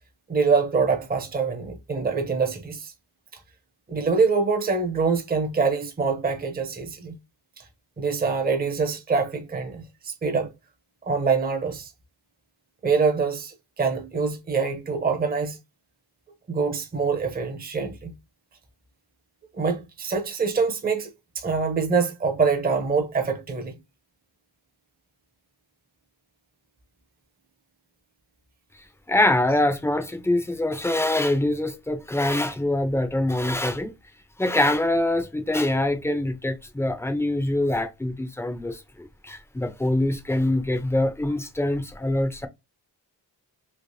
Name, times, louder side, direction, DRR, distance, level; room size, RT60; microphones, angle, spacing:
voice 1, 0.3-2.9 3.9-7.2 7.6-7.7 8.0-10.5 11.1-11.9 12.8-15.6 16.5-18.1 19.5-23.7, right 5 dB, 25° right, 0.7 m, -25 dB
voice 2, 29.1-33.9 34.4-42.5, left 1 dB, 5° left, 0.6 m, -24 dB
3.3 x 2.9 x 2.6 m
wide cardioid pair, 125°, 38 cm